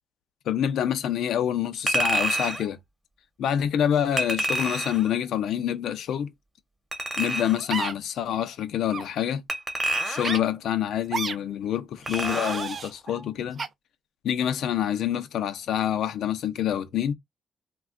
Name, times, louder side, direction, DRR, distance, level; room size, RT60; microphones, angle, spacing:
voice 1, 0.5-2.8 3.4-6.3 7.2-9.4 10.0-13.6 14.2-17.1, left 10 dB, 75° left, 0.5 m, -27 dB
Chink clink, 1.9-2.6 4.2-5.1 6.9-7.7 9.5-10.5 12.1-12.7 13.1-13.2, right 1 dB, 20° right, 0.9 m, -28 dB
sound 1, 7.7-7.9 8.9-9.1 10.2-10.4 11.1-11.4 12.0-12.9 13.6-13.7, right 5 dB, 45° right, 0.4 m, -31 dB
2.4 x 2.2 x 3.6 m
cardioid pair, 90°, 0 cm